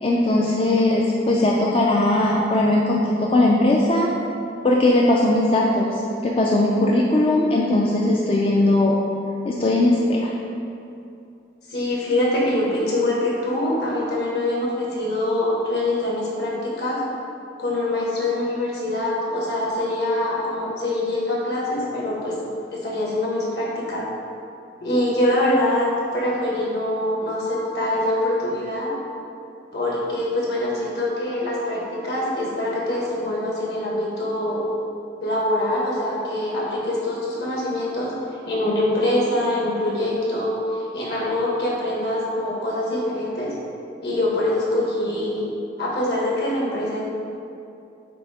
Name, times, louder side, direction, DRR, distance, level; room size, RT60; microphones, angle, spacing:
voice 1, 0.0-4.1 4.6-8.9 9.4-10.3, left 1 dB, 30° left, -3 dB, 0.4 m, -19 dB
voice 2, 11.7-17.0 17.6-22.3 22.7-24.0 24.8-28.9 29.7-34.6 35.2-38.1 38.5-43.5 44.0-45.4 45.8-47.0, left 1 dB, 60° left, -5 dB, 1.5 m, -24 dB
7.7 x 2.8 x 4.8 m, 2.6 s
head